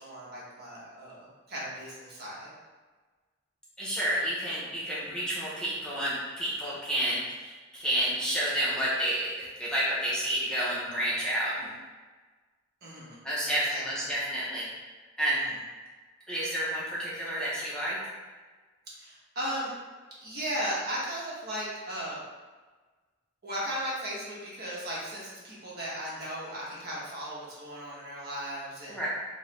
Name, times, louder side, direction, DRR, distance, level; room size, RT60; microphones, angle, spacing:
voice 1, 0.0-2.5 12.8-13.2 13.5-13.9 18.9-19.7 20.2-22.2 23.4-29.0, equal, 50° right, -6 dB, 1.0 m, -36 dB
voice 2, 3.8-9.3 9.6-11.7 13.2-14.7 15.2-15.4 16.3-18.0 28.9-29.1, right 1 dB, 5° left, -8 dB, 0.7 m, -30 dB
4.4 x 2.1 x 3.2 m, 1.3 s
head